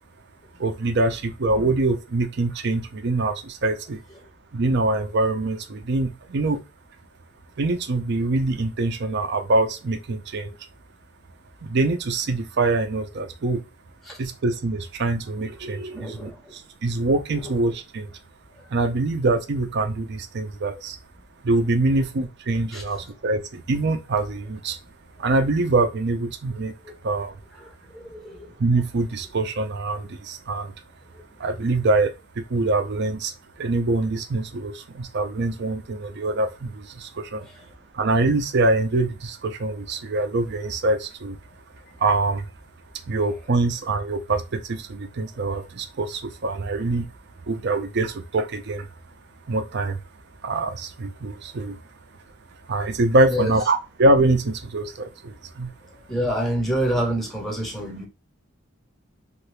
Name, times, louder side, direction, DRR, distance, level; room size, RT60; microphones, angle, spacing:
voice 1, 0.6-4.0 4.5-6.6 7.6-10.5 11.6-13.6 14.2-18.1 18.7-21.0 21.4-24.8 25.2-26.7 27.0-27.4 28.6-30.7 31.4-37.5 37.9-41.4 42.0-42.5 43.1-47.1 47.5-48.9 49.5-50.0 50.4-51.8 52.7-55.7, right 2 dB, 55° right, 0.5 m, -24 dB
voice 2, 15.9-16.5 22.7-22.8 27.6-28.5 31.1-31.2 53.3-53.5 56.1-58.1, equal, ahead, 0.6 m, -27 dB
2.8 x 2.5 x 3.1 m
head